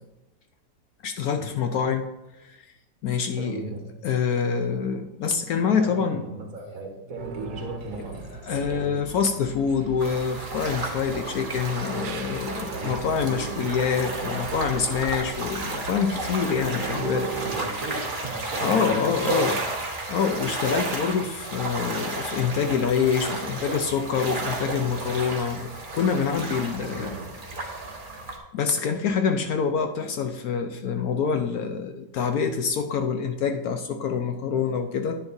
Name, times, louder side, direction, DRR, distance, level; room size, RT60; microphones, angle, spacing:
voice 1, 1.0-2.1 2.4-2.7 3.0-3.7 4.0-6.2 8.4-17.3 18.6-19.6 20.1-27.2 28.5-35.2, left 6 dB, 70° left, 6 dB, 1.0 m, -26 dB
voice 2, 3.4-3.9 5.6-9.0 12.7-13.0 13.2-13.6 17.4-19.5 26.8-27.3, right 2 dB, 55° right, 1 dB, 1.8 m, -36 dB
sound 1, 7.2-17.6, right 5 dB, 85° right, 1.4 m, -38 dB
sound 2, 10.0-28.4, right 2 dB, 30° right, 1.4 m, -33 dB
10.5 x 9.7 x 2.7 m, 1.0 s
omnidirectional pair, 1.8 m